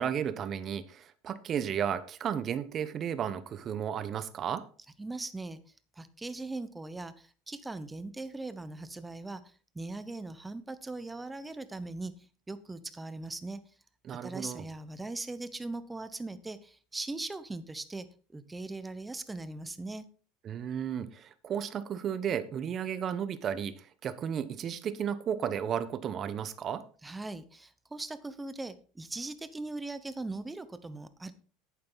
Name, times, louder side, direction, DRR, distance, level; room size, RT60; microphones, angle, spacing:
voice 1, 0.0-4.6 14.0-14.6 20.4-26.8, right 8 dB, 30° right, 0.9 m, -33 dB
voice 2, 5.0-5.6 6.0-12.1 12.5-13.6 14.2-18.1 18.3-20.0 27.0-31.3, right 2 dB, 10° right, 0.9 m, -40 dB
11.0 x 8.6 x 4.0 m
supercardioid pair, 140°, 0 cm